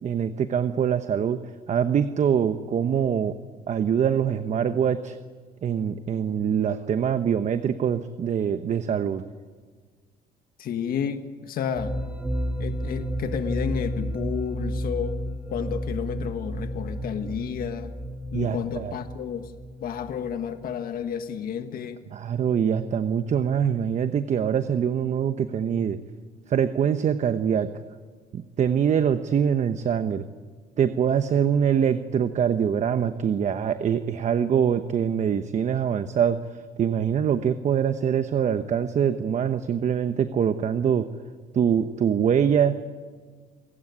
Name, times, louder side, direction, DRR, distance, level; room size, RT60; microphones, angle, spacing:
voice 1, 0.0-1.4 1.7-3.3 3.7-5.2 5.6-9.2 18.3-18.9 22.1-26.0 26.5-27.7 28.3-30.2 30.8-36.4 36.8-41.1 41.5-42.8, right 8 dB, 45° right, 10 dB, 1.0 m, -24 dB
voice 2, 10.6-11.9 12.6-15.2 15.5-17.9 18.3-19.5 19.8-22.0, left 8 dB, 60° left, 7 dB, 1.6 m, -31 dB
sound 1, 11.7-21.4, equal, 5° right, 2.2 m, -32 dB
28.0 x 16.5 x 9.7 m, 1.5 s
cardioid pair, 110°, 17 cm